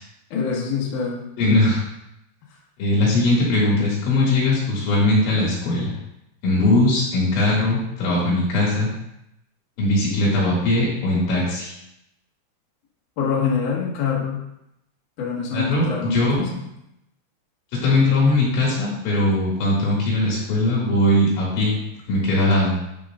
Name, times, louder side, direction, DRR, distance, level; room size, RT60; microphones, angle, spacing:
voice 1, 0.3-1.2 13.2-14.4 15.2-16.6, left 6 dB, 55° left, -5 dB, 2.6 m, -25 dB
voice 2, 1.4-1.8 2.8-5.9 6.4-8.9 9.8-11.7 15.5-15.8 16.1-16.5 17.8-21.8 22.1-22.8, left 2 dB, 80° left, -6 dB, 4.8 m, -20 dB
11.5 x 4.9 x 2.6 m, 0.82 s
omnidirectional pair, 5.4 m